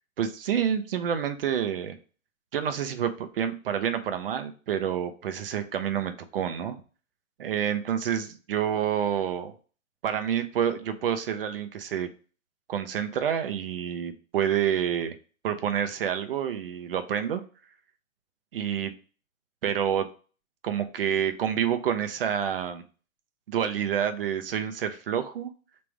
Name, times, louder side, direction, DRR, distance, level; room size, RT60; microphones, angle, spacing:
voice 1, 0.2-2.0 2.5-6.8 7.4-9.5 10.0-12.1 12.7-15.1 15.4-17.4 18.5-18.9 19.6-20.1 20.6-22.8 23.5-25.5, right 9 dB, 45° right, 9 dB, 0.5 m, -28 dB
3.5 x 2.5 x 4.5 m, 0.38 s
figure-of-eight pair, 125°, 41 cm